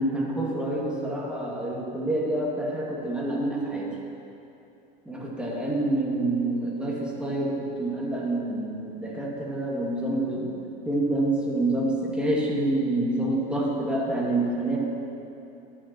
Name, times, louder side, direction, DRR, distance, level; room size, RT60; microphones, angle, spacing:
voice 1, 0.0-3.9 5.1-10.6 10.9-14.8, right 1 dB, 5° right, -4 dB, 2.3 m, -27 dB
14.5 x 11.0 x 3.1 m, 2.8 s
hypercardioid pair, 95°, 29 cm